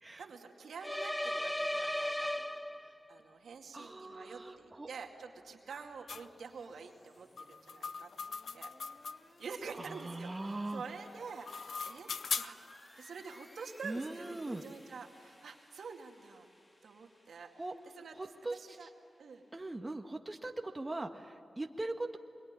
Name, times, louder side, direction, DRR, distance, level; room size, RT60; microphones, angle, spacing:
voice 1, 0.2-2.5 2.8-8.1 8.5-16.5 16.8-17.5 18.0-18.1 18.5-18.9 19.2-19.4, right 5 dB, 85° right, 2 dB, 2.2 m, -48 dB
sound 1, 0.8-3.2, left 1 dB, 10° left, 0.6 m, -36 dB
sound 2, 3.7-19.8, left 1 dB, 30° left, 3.6 m, -61 dB
voice 2, 3.7-4.9 9.8-10.8 13.8-14.6 17.5-17.7 18.1-18.9 19.5-22.2, right 2 dB, 25° right, 4 dB, 1.5 m, -40 dB
sound 3, 6.1-6.3 7.4-9.5 11.2-12.7, left 5 dB, 80° left, 0.6 m, -40 dB
24.5 x 22.0 x 9.9 m, 2.3 s
cardioid pair, 60°, 0 cm